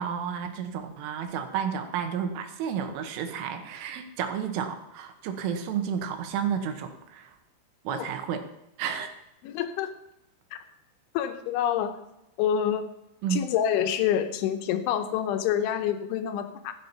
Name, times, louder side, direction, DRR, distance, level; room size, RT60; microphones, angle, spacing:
voice 1, 0.0-7.4 7.9-8.4 8.8-9.1 13.2-13.5, right 8 dB, 85° right, 6 dB, 3.7 m, -31 dB
voice 2, 9.4-9.9 11.1-12.0 12.4-12.9 13.3-16.7, left 9 dB, 80° left, 8 dB, 3.2 m, -27 dB
15.0 x 8.3 x 5.7 m, 0.87 s
omnidirectional pair, 5.6 m